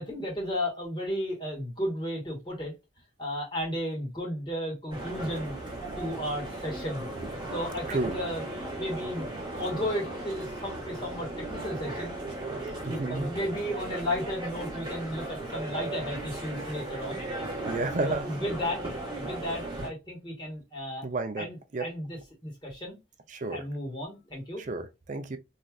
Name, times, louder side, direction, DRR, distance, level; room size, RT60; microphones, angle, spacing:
voice 1, 0.0-2.7 3.2-5.6 6.0-7.0 7.5-8.4 8.8-9.2 9.5-12.1 12.5-12.6 12.9-17.2 18.0-18.8 19.1-21.0 21.4-23.0 23.5-24.6, equal, 25° left, 1.5 m, -34 dB
sound 1, 4.9-19.9, right 1 dB, 25° right, 1.1 m, -37 dB
voice 2, 7.9-8.2 12.8-13.3 17.6-18.4 21.0-21.9 23.3-23.7 24.6-25.4, right 3 dB, 40° right, 0.4 m, -32 dB
3.2 x 2.6 x 2.3 m
head